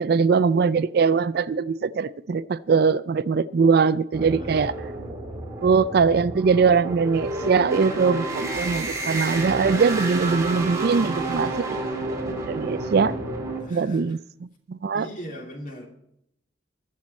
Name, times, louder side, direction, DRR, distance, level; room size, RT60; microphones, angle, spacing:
voice 1, 0.0-4.7 5.6-11.5 12.5-13.1 13.7-14.2 14.7-15.1, right 5 dB, 55° right, 16 dB, 0.4 m, -21 dB
sound 1, 4.1-13.6, right 2 dB, 15° right, 2.7 m, -30 dB
voice 2, 4.2-4.7 11.0-12.0 13.5-14.2 14.9-15.9, equal, 45° left, 1 dB, 2.9 m, -39 dB
21.5 x 7.4 x 4.3 m, 0.76 s
head